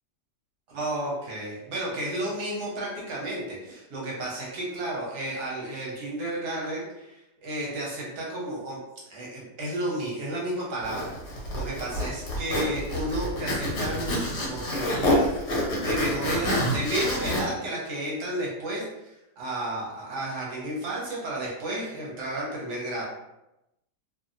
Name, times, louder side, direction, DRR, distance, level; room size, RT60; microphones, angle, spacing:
voice 1, 0.7-8.8 9.1-11.1 11.5-15.3 15.8-23.0, right 1 dB, 70° right, -4 dB, 1.4 m, -32 dB
Zipper (clothing), 10.8-17.4, equal, 55° left, 0.9 m, -27 dB
2.7 x 2.7 x 2.5 m, 0.90 s
omnidirectional pair, 1.8 m